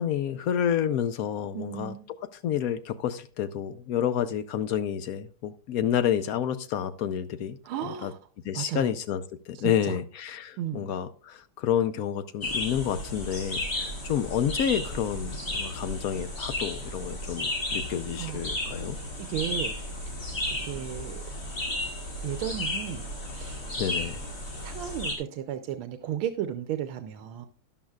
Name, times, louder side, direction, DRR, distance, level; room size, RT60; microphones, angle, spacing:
voice 1, 0.0-2.0 2.3-8.1 8.4-19.0 23.8-24.2, left 9 dB, 85° left, 0.7 m, -29 dB
voice 2, 1.5-2.1 7.6-8.2 8.5-8.9 9.5-10.0 10.6-10.9 18.2-18.4 19.2-19.7 20.6-21.2 22.2-23.1 23.3-23.6 24.6-27.5, right 10 dB, 85° right, 1.6 m, -34 dB
sound 1, 12.4-25.1, left 1 dB, 40° left, 3.0 m, -33 dB
13.0 x 11.0 x 2.3 m
omnidirectional pair, 2.2 m